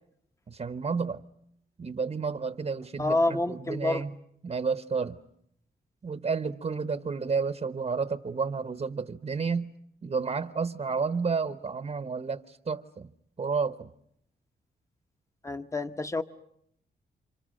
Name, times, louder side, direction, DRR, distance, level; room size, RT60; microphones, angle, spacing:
voice 1, 0.5-1.2 1.8-4.2 4.4-5.2 6.0-9.7 10.0-13.1 13.4-13.9, right 5 dB, 40° right, 1.0 m, -31 dB
voice 2, 3.0-4.0 15.4-16.2, left 2 dB, 15° left, 1.0 m, -28 dB
29.5 x 26.5 x 6.5 m
cardioid pair, 85°, 18 cm